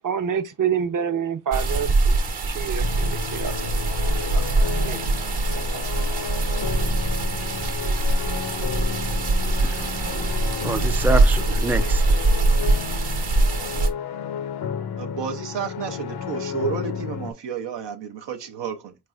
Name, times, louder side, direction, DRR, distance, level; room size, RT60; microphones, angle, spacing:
voice 1, 0.0-2.2 2.5-5.0 5.5-5.8, right 7 dB, 50° right, 0.7 m, -28 dB
sound 1, 1.5-13.9, right 2 dB, 65° right, 1.1 m, -22 dB
sound 2, 2.8-17.3, left 7 dB, 65° left, 0.6 m, -32 dB
voice 2, 9.6-10.3 10.6-12.2, right 2 dB, 5° right, 0.4 m, -27 dB
voice 3, 15.0-19.0, right 6 dB, 90° right, 0.6 m, -31 dB
4.1 x 3.3 x 2.3 m
cardioid pair, 50°, 42 cm